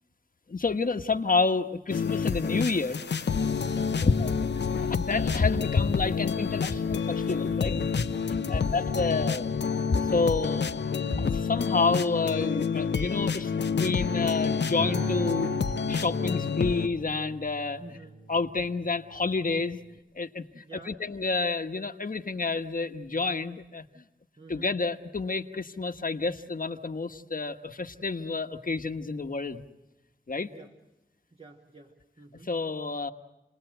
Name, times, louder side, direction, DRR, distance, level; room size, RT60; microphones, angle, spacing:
voice 1, 0.5-3.0 4.0-4.4 4.8-8.1 8.5-15.5 15.9-17.8 18.3-19.8 20.1-24.0 24.5-29.6 30.3-30.5 32.4-33.1, left 4 dB, 55° left, 7 dB, 1.3 m, -29 dB
sound 1, 1.9-16.9, left 6 dB, 85° left, 0.8 m, -29 dB
voice 2, 3.7-4.1 8.4-8.8 9.1-9.3 17.8-18.2 20.6-21.0 24.4-24.7 30.4-30.7 31.3-32.6, right 3 dB, 35° right, 2 dB, 2.0 m, -48 dB
Acoustic guitar, 14.8-20.0, right 3 dB, 70° right, 4.7 m, -40 dB
30.0 x 20.0 x 8.0 m, 0.96 s
wide cardioid pair, 55°, 18 cm